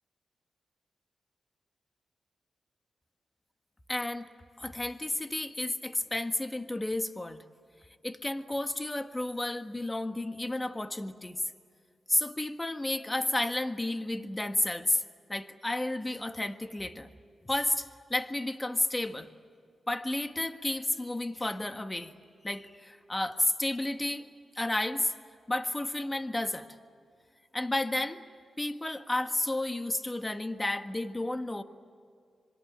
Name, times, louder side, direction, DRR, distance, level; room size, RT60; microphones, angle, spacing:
voice 1, 3.9-4.3 4.6-7.4 8.0-11.4 12.1-15.0 15.3-17.1 17.4-19.3 19.9-22.1 22.4-24.3 24.5-25.1 25.5-26.7 27.5-28.2 28.6-31.6, left 1 dB, 20° left, 8 dB, 1.6 m, -31 dB
26.5 x 22.5 x 8.9 m, 2.3 s
cardioid pair, 60°, 0 cm